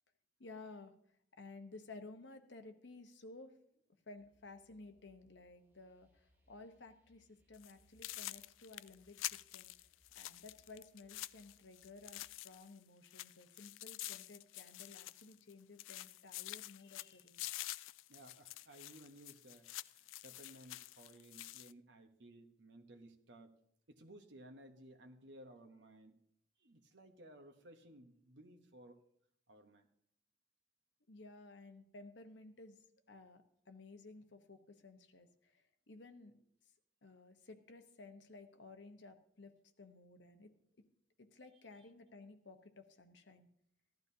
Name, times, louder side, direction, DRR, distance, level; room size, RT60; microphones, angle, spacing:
voice 1, 0.4-0.9 1.4-3.5 4.1-9.7 10.1-17.4 31.1-32.8 33.1-35.6 35.9-36.5 37.0-39.5 39.8-40.5 41.2-43.5, left 3 dB, 70° left, 7 dB, 1.0 m, -55 dB
sound 1, 4.1-12.3, equal, 10° right, 1.2 m, -75 dB
sound 2, 7.5-7.7 8.0-12.8 13.0-15.5 15.8-21.7, left 16 dB, 90° left, 0.3 m, -48 dB
voice 2, 18.1-23.6 23.9-26.2 26.6-29.0 29.5-29.9 41.8-41.9, right 1 dB, 70° right, 5 dB, 1.0 m, -58 dB
15.5 x 12.0 x 2.8 m, 0.70 s
head